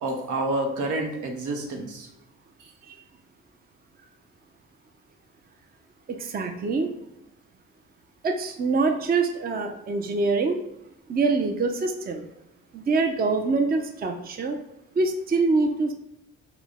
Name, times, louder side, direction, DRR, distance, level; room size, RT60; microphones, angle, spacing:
voice 1, 0.0-2.1, right 2 dB, 80° right, 2 dB, 1.0 m, -28 dB
voice 2, 6.1-6.9 8.2-10.6 11.1-12.2 12.7-14.6 15.0-15.9, right 3 dB, 30° right, 5 dB, 0.5 m, -25 dB
5.9 x 2.1 x 3.5 m, 0.89 s
cardioid pair, 90°, 30 cm